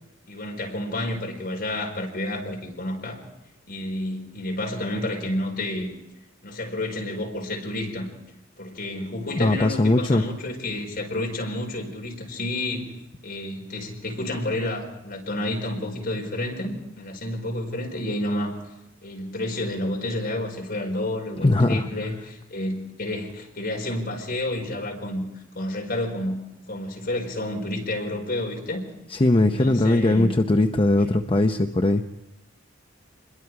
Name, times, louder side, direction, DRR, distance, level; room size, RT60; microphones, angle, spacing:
voice 1, 0.3-3.2 3.7-5.9 6.4-8.1 8.6-12.8 13.2-18.6 19.0-28.8 29.4-30.4 31.0-31.1, left 1 dB, 50° left, 1 dB, 4.8 m, -30 dB
voice 2, 9.3-10.2 21.4-21.9 29.1-32.0, left 2 dB, 25° left, 6 dB, 0.7 m, -20 dB
26.0 x 22.0 x 4.8 m, 0.89 s
head